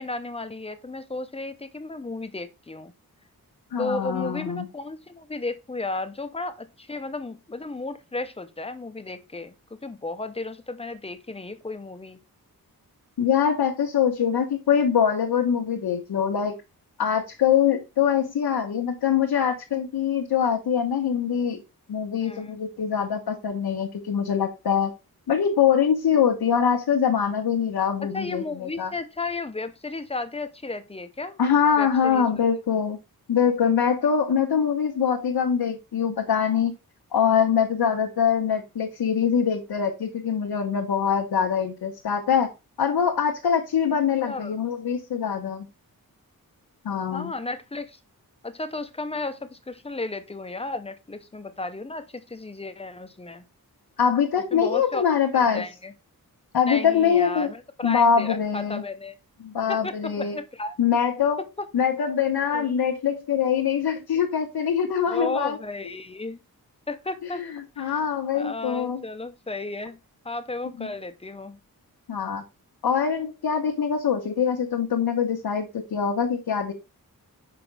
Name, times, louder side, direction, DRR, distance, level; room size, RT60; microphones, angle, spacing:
voice 1, 0.0-2.9 3.8-9.5 9.8-12.2 22.2-22.6 28.1-31.4 31.8-32.4 44.3-44.6 47.1-48.0 48.4-53.4 54.5-55.0 55.3-55.9 56.7-59.2 59.7-60.7 61.6-61.7 62.5-62.7 65.1-66.4 66.9-67.4 67.8-68.0 68.3-70.0 70.2-71.6, left 2 dB, 15° left, 0.6 m, -34 dB
voice 2, 3.7-4.7 13.2-16.5 17.0-21.6 21.9-24.9 25.3-28.9 31.4-33.0 33.3-36.7 37.1-42.5 42.8-45.7 46.8-47.3 54.0-55.6 56.5-57.5 57.8-58.8 59.4-60.4 60.8-61.4 61.7-65.6 67.2-67.5 67.8-69.0 70.8-70.9 72.1-72.4 72.8-76.7, left 7 dB, 90° left, 1.2 m, -23 dB
6.0 x 5.0 x 3.3 m
wide cardioid pair, 170°, 37 cm